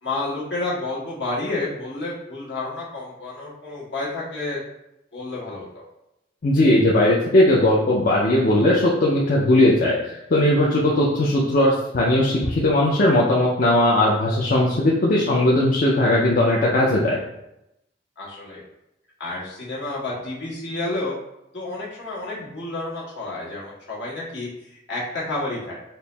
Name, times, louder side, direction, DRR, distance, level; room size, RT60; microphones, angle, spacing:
voice 1, 0.0-4.6 5.1-5.8 15.1-15.3 18.2-18.6 19.2-21.1 21.5-25.8, left 2 dB, 70° left, -7 dB, 1.4 m, -30 dB
voice 2, 6.4-9.9 10.3-17.2, left 1 dB, 50° left, -4 dB, 0.5 m, -18 dB
4.3 x 2.0 x 3.3 m, 0.87 s
head